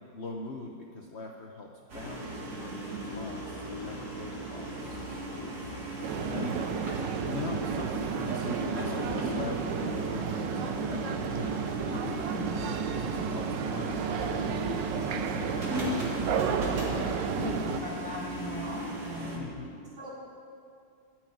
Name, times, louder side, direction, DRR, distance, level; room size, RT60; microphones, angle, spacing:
voice 1, 0.0-5.0 6.3-6.6 7.2-15.6 19.3-19.8, left 3 dB, 50° left, 1 dB, 0.8 m, -42 dB
sound 1, 1.9-19.4, equal, 60° right, 2.5 m, -37 dB
sound 2, 6.0-17.8, right 7 dB, 85° right, 1.4 m, -32 dB
voice 2, 6.3-6.6 12.2-12.4 16.6-19.4 20.0-20.2, equal, 45° right, -7 dB, 3.7 m, -39 dB
13.0 x 6.3 x 9.4 m, 2.4 s
omnidirectional pair, 1.9 m